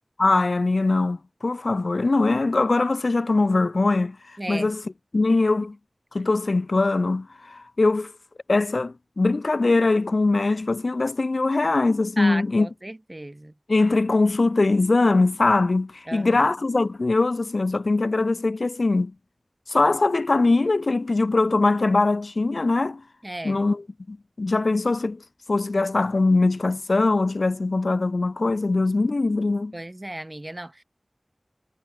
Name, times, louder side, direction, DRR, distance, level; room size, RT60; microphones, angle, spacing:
voice 1, 0.2-4.2 4.5-4.8 5.1-5.8 6.1-8.1 8.5-12.7 13.7-19.1 19.7-23.0 23.4-25.2 25.5-29.7, left 3 dB, 90° left, 3.1 m, -22 dB
voice 2, 4.4-4.7 12.2-13.5 16.1-16.4 23.2-23.6 29.7-30.8, right 1 dB, 35° right, 2.2 m, -34 dB
wide cardioid pair, 40°, 0 cm